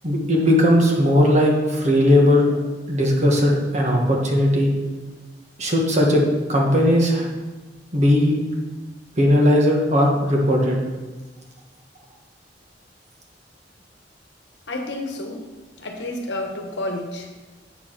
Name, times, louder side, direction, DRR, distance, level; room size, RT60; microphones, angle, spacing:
voice 1, 0.0-2.6 2.9-4.7 5.6-6.2 6.5-7.3 7.9-8.3 9.2-10.8, left 1 dB, 40° right, -1 dB, 1.5 m, -18 dB
voice 2, 14.7-15.5 15.8-17.3, left 1 dB, 75° left, 3 dB, 1.1 m, -30 dB
8.4 x 4.7 x 5.9 m, 1.2 s
head